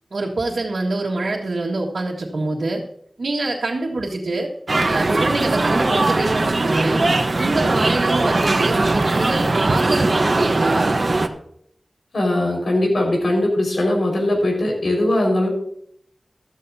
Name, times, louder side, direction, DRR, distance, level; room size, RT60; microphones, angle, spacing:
voice 1, 0.1-2.8 3.2-4.5 4.9-7.0 7.4-10.9, right 2 dB, 85° right, -4 dB, 1.7 m, -25 dB
sound 1, 4.7-11.3, right 2 dB, 55° right, 1.1 m, -19 dB
voice 2, 12.1-15.5, left 1 dB, 80° left, 0 dB, 5.1 m, -20 dB
14.0 x 13.5 x 2.8 m, 0.69 s
wide cardioid pair, 80°, 0 cm